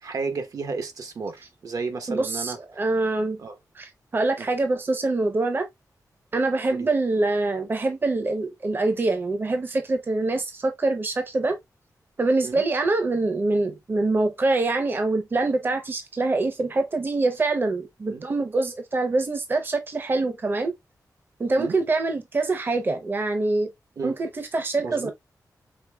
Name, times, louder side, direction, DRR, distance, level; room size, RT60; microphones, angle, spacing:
voice 1, 0.0-2.6 3.4-3.5 4.4-4.5 6.7-6.9 12.4-12.6 18.1-18.3 21.6-21.8 24.0-24.2 24.8-25.1, right 4 dB, 65° right, 0.9 m, -32 dB
voice 2, 2.1-3.4 3.7-5.7 6.3-11.6 12.2-20.7 21.4-23.7 24.0-25.1, right 2 dB, 35° right, 0.7 m, -25 dB
5.1 x 3.3 x 2.2 m
wide cardioid pair, 145°, 7 cm